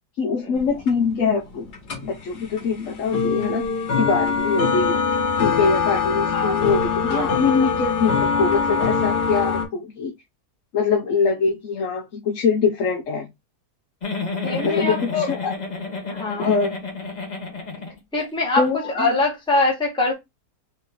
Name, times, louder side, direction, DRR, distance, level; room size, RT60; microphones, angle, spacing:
voice 1, 0.2-1.7 2.0-3.7 4.0-5.0 5.3-10.1 10.7-13.3 14.6-15.5 16.4-16.7 18.6-19.2, left 5 dB, 60° left, 1.0 m, -23 dB
sound 1, 0.6-9.7, left 5 dB, 80° left, 1.9 m, -23 dB
voice 2, 7.0-7.3 14.4-15.3 16.1-16.5 18.1-18.6 18.9-20.1, left 2 dB, 5° left, 1.1 m, -23 dB
Giggle, 14.0-18.3 18.6-18.7 19.0-19.1, left 2 dB, 30° left, 1.1 m, -30 dB
4.2 x 2.8 x 3.6 m
omnidirectional pair, 1.7 m